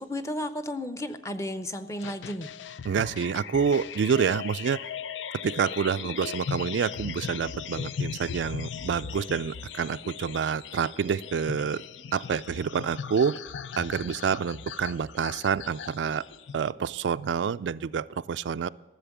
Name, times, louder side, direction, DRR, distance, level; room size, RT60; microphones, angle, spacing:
voice 1, 0.0-2.5, left 1 dB, 15° left, 11 dB, 0.6 m, -33 dB
sound 1, 2.0-16.7, left 7 dB, 85° left, 0.5 m, -38 dB
voice 2, 2.8-4.8 5.4-11.8 12.1-13.4 13.8-16.2 16.5-18.7, right 6 dB, 80° right, 14 dB, 0.3 m, -28 dB
13.5 x 7.6 x 7.1 m, 1.3 s
head